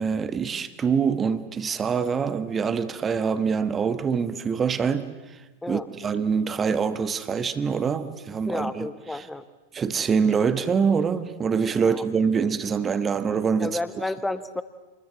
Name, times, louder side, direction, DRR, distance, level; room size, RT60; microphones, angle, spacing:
voice 1, 0.0-5.4 5.7-9.3 9.7-13.8, right 6 dB, 20° right, 1.4 m, -25 dB
voice 2, 8.5-9.4 11.8-12.0 13.6-14.6, left 2 dB, 5° left, 1.3 m, -31 dB
28.0 x 21.5 x 8.1 m
figure-of-eight pair, 90°, 0 cm